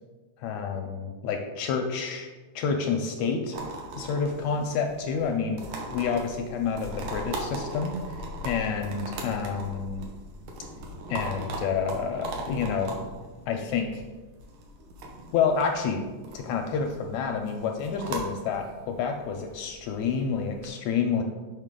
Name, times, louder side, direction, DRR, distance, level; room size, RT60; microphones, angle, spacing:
voice 1, 0.4-2.3 2.5-3.6 3.9-5.6 5.9-10.1 11.1-12.9 13.5-14.0 15.3-16.0 16.3-21.2, left 6 dB, 80° left, 4 dB, 1.6 m, -29 dB
sound 1, 3.5-20.7, right 2 dB, 75° right, 2.4 m, -39 dB
6.5 x 5.5 x 3.7 m, 1.2 s
omnidirectional pair, 3.6 m